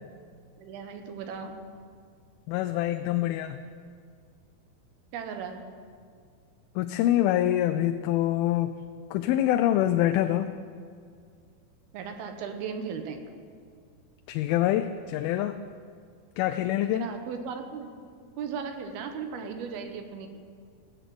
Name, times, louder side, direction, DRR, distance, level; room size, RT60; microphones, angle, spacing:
voice 1, 0.6-1.6 5.1-5.6 11.9-13.2 16.8-17.9 18.4-20.3, right 6 dB, 85° right, 6 dB, 3.0 m, -36 dB
voice 2, 2.5-3.6 6.8-8.7 9.1-10.5 14.3-15.6 16.4-17.1, left 13 dB, 85° left, 9 dB, 2.4 m, -25 dB
15.5 x 8.2 x 7.7 m, 2.1 s
omnidirectional pair, 4.3 m